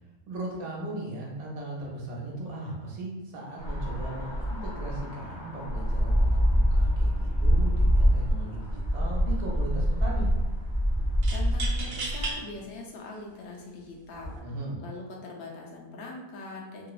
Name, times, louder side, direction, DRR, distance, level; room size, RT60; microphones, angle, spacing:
voice 1, 0.3-10.3 14.4-14.8, right 2 dB, 75° right, -3 dB, 1.1 m, -37 dB
sound 1, 3.6-12.4, equal, 35° left, 0.5 m, -25 dB
sound 2, 8.1-8.3 8.6-9.3 11.2-12.4 13.1-13.2 14.1-14.4, right 3 dB, 55° right, 0.8 m, -36 dB
voice 2, 11.3-14.3 14.8-16.9, left 3 dB, 90° left, -1 dB, 1.1 m, -42 dB
3.0 x 2.0 x 2.3 m, 1.1 s
omnidirectional pair, 1.5 m